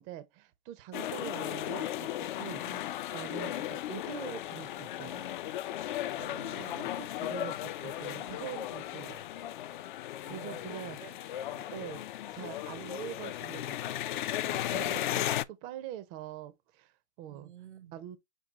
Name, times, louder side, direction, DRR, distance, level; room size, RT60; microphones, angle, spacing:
voice 1, 0.0-2.6 3.1-5.4 7.0-9.2 10.3-11.2 11.6-12.0 12.3-17.5 17.9-18.2, right 11 dB, 25° right, 0.5 m, -44 dB
sound 1, 0.9-15.4, left 13 dB, 45° left, 0.4 m, -36 dB
voice 2, 6.2-7.0 10.2-11.1 11.5-11.7 17.3-17.9, right 11 dB, 75° right, 0.8 m, -51 dB
6.0 x 2.3 x 3.9 m
hypercardioid pair, 130°, 35 cm